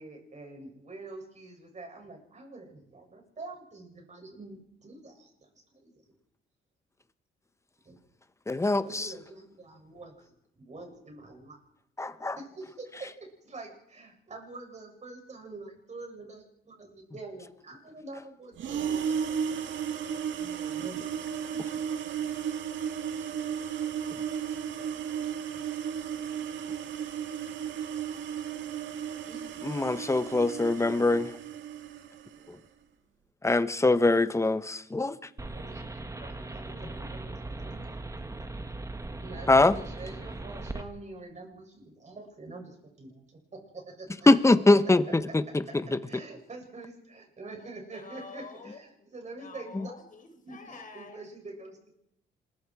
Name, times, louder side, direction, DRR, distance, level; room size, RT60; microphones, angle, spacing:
voice 1, 0.0-5.9 7.8-8.0 8.8-11.6 12.4-19.2 20.4-22.2 24.7-24.9 29.3-29.6 35.5-38.1 38.4-38.5 39.2-43.2 43.7-44.3 44.8-44.9 46.0-49.9 50.4-51.9, right 3 dB, 35° right, 2 dB, 7.8 m, -46 dB
voice 2, 8.5-9.1 12.0-12.4 29.6-31.3 33.4-35.2 39.5-39.8 44.3-45.4, left 2 dB, 15° left, 13 dB, 1.1 m, -23 dB
sound 1, 18.6-32.5, right 8 dB, 70° right, 2.1 m, -34 dB
sound 2, 35.4-40.8, right 2 dB, 15° right, 1.8 m, -39 dB
voice 3, 47.6-48.8 49.4-51.2, left 4 dB, 40° left, 6 dB, 4.8 m, -47 dB
26.0 x 23.0 x 4.9 m, 0.75 s
cardioid pair, 90°, 20 cm